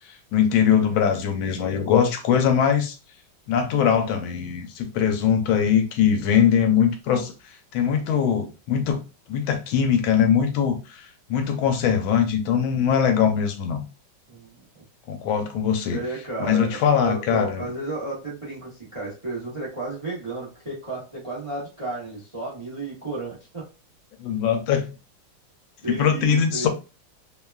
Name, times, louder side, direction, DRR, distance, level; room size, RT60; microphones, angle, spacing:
voice 1, 0.3-2.9 3.5-7.3 7.7-9.0 9.3-11.0 11.3-13.8 15.1-16.0 16.4-17.6 24.2-24.9 25.9-26.7, left 8 dB, 80° left, 1.4 m, -21 dB
voice 2, 14.3-14.6 15.8-23.7 25.8-26.7, right 2 dB, 45° right, 0.4 m, -33 dB
3.4 x 2.2 x 2.3 m
omnidirectional pair, 2.2 m